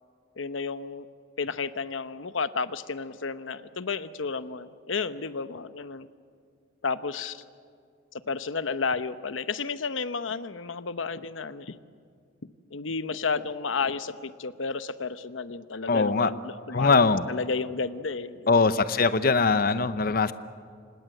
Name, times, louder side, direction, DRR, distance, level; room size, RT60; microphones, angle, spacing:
voice 1, 0.4-1.1 1.4-6.1 6.8-7.4 8.3-11.8 12.7-18.6, left 4 dB, 90° left, 13 dB, 0.9 m, -32 dB
voice 2, 15.9-16.3 16.7-17.3 18.5-20.3, left 4 dB, 50° left, 13 dB, 0.8 m, -22 dB
26.0 x 20.0 x 7.8 m, 2.2 s
head